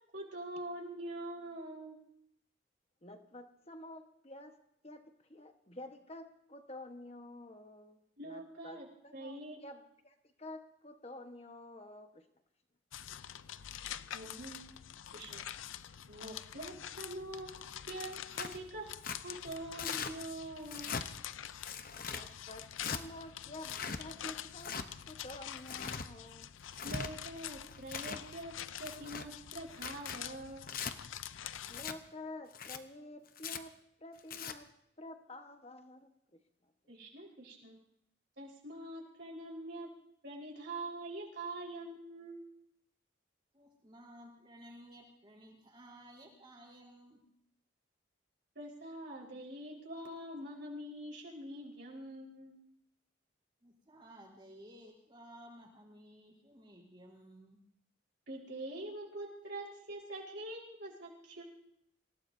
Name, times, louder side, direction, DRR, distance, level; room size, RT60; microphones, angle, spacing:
voice 1, 0.1-2.0 8.2-8.8 9.1-9.6 14.1-14.7 15.1-15.5 16.1-18.9 19.2-21.0 26.8-28.5 28.8-30.8 36.9-37.8 38.4-39.9 40.2-42.4 48.5-52.5 58.3-61.4, right 1 dB, 60° right, -3 dB, 4.6 m, -44 dB
voice 2, 3.0-4.6 4.8-12.3 22.0-26.5 31.7-34.7 35.0-36.7, left 1 dB, 30° left, 6 dB, 1.3 m, -50 dB
sound 1, 12.9-32.0, left 10 dB, 85° left, 0.5 m, -46 dB
Tearing, 18.3-18.6 19.0-19.2 19.8-20.1 20.6-21.0 21.6-22.2 22.8-23.0 23.6-24.0 24.6-24.9 25.5-26.1 26.6-27.1 27.7-28.2 28.8-29.3 29.7-30.2 30.7-30.9 31.7-32.0 32.5-32.8 33.4-33.6 34.2-34.5, left 6 dB, 45° left, 0.9 m, -40 dB
voice 3, 43.5-47.2 53.6-57.6, equal, 25° right, -4 dB, 4.1 m, -55 dB
27.0 x 17.0 x 2.7 m, 0.74 s
head